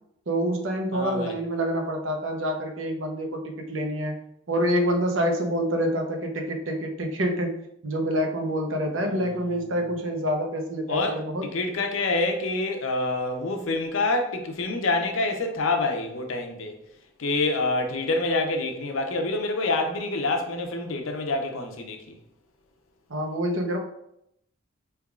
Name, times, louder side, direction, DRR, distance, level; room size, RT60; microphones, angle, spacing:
voice 1, 0.3-4.2 4.5-7.6 7.8-11.4 23.1-23.8, equal, 70° right, 0.8 m, -27 dB
voice 2, 0.9-1.3 9.0-9.4 10.9-16.8 17.2-22.2, left 2 dB, 80° left, 0.6 m, -27 dB
4.5 x 3.4 x 2.4 m
head